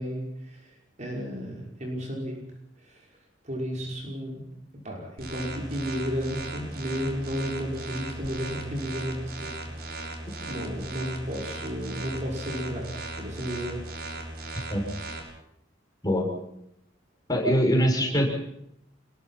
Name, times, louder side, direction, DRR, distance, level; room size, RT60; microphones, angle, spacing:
voice 1, 0.0-2.5 2.8-3.1 3.4-9.6 10.4-13.8, equal, 40° right, 0 dB, 5.6 m, -33 dB
sound 1, 5.2-15.2, right 2 dB, 55° right, 6.8 m, -37 dB
voice 2, 17.3-18.4, equal, 20° left, 2 dB, 6.1 m, -23 dB
27.5 x 21.5 x 5.8 m, 0.78 s
head